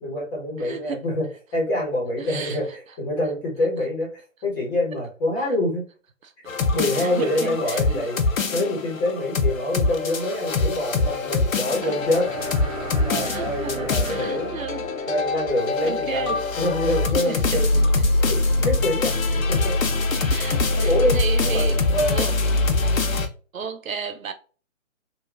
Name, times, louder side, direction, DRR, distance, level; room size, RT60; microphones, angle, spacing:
voice 1, 0.0-5.8 6.7-8.2 8.5-12.6 13.0-14.6 15.1-17.8 18.2-19.7 20.8-21.2 21.5-21.6 21.9-22.2, left 1 dB, 15° left, 0.9 m, -26 dB
voice 2, 0.6-1.1 2.2-2.6 6.2-6.3 6.9-8.1 10.1-10.2 11.8-11.9 13.1-14.8 15.8-16.4 17.1-17.6 18.0-18.3 20.2-22.3 23.5-24.3, right 6 dB, 85° right, 0.7 m, -33 dB
sound 1, 6.5-23.3, left 3 dB, 85° left, 0.7 m, -24 dB
sound 2, 11.9-15.6, right 2 dB, 30° right, 0.6 m, -34 dB
2.9 x 2.3 x 2.3 m
figure-of-eight pair, 145°, 39 cm